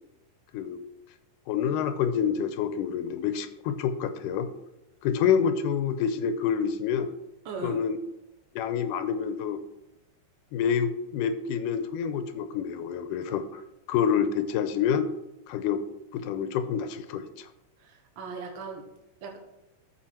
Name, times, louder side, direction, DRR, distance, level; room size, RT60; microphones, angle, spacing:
voice 1, 1.5-4.5 5.0-7.1 7.6-8.0 8.6-9.6 10.5-13.6 13.9-15.1 15.5-15.8 16.1-17.5, left 7 dB, 90° left, 11 dB, 2.2 m, -27 dB
voice 2, 7.4-7.8 17.8-18.8 19.2-19.4, right 4 dB, 50° right, 2 dB, 1.6 m, -38 dB
13.5 x 4.7 x 4.4 m, 0.95 s
omnidirectional pair, 3.7 m